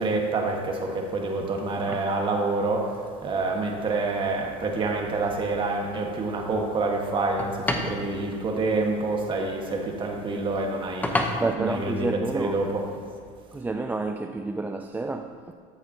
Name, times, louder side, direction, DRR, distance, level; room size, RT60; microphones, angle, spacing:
voice 1, 0.0-12.8, right 3 dB, 30° right, 1.4 m, -27 dB
sound 1, 2.9-13.8, left 1 dB, 10° left, 0.8 m, -36 dB
voice 2, 11.4-12.6 13.5-15.5, right 3 dB, 10° right, 0.3 m, -30 dB
13.5 x 6.8 x 2.8 m
supercardioid pair, 110°, 16 cm